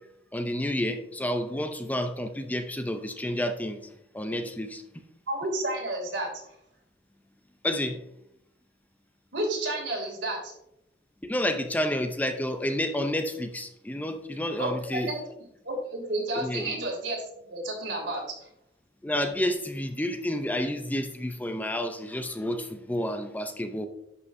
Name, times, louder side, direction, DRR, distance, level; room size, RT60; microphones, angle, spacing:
voice 1, 0.3-3.8 4.1-4.8 7.6-8.0 11.2-15.1 16.4-16.8 19.0-23.9, left 1 dB, 10° left, 7 dB, 0.5 m, -30 dB
voice 2, 5.3-6.3 9.3-10.5 14.6-15.2 15.6-17.2 17.5-18.5, right 1 dB, 85° right, 0 dB, 2.7 m, -31 dB
11.0 x 5.7 x 2.6 m, 0.79 s
head